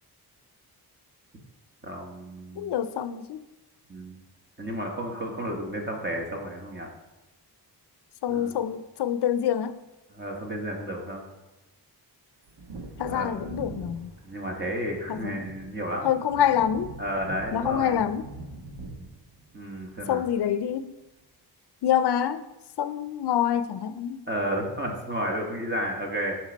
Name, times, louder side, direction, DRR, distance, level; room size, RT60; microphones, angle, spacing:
voice 1, 1.8-2.7 3.9-4.2 4.6-6.9 8.3-8.5 10.1-11.2 13.1-13.3 14.2-16.1 17.0-18.0 19.5-20.2 24.3-26.4, equal, 25° right, 1.6 m, -32 dB
voice 2, 2.6-3.4 8.2-9.8 13.0-14.1 15.1-15.4 16.0-16.9 17.5-18.2 20.1-20.9 21.8-22.4 22.8-24.2, left 9 dB, 75° left, 0.6 m, -26 dB
Wind / Thunder, 12.4-20.7 21.0-21.1, right 2 dB, 85° right, 1.3 m, -43 dB
8.0 x 4.7 x 5.2 m
cardioid pair, 85°, 40 cm